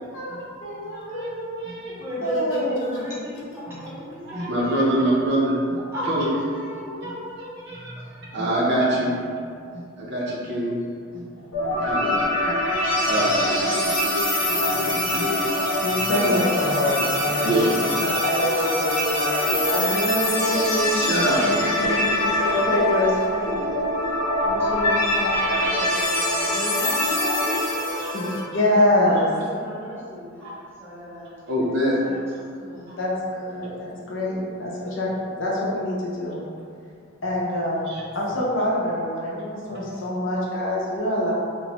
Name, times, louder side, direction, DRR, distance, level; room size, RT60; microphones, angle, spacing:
voice 1, 0.1-1.9 2.2-3.0 3.4-3.5 15.8-17.7 18.0-23.2 28.1-29.3 33.0-35.1 35.4-36.4 37.2-41.3, left 1 dB, 60° left, -5 dB, 0.6 m, -25 dB
voice 2, 0.9-1.3 1.6-1.9 3.7-3.8 4.2-5.8 6.0-6.3 7.0-7.1 7.7-7.9 8.3-10.7 11.1-11.2 11.5-15.4 16.2-16.4 17.4-18.0 20.9-22.4 26.8-26.9 30.4-30.5 31.5-32.0 32.9-33.0 37.9-38.0 39.7-39.8, right 1 dB, 50° right, -5 dB, 0.5 m, -26 dB
voice 3, 2.0-4.9 5.9-8.1 8.5-8.6 20.4-23.6 24.4-28.5 29.0-31.3 32.0-32.2 32.5-32.9 37.8-38.0, equal, 10° right, -10 dB, 0.7 m, -34 dB
sound 1, 11.5-28.4, left 1 dB, 85° left, 0.8 m, -24 dB
3.0 x 2.1 x 2.8 m, 2.2 s
head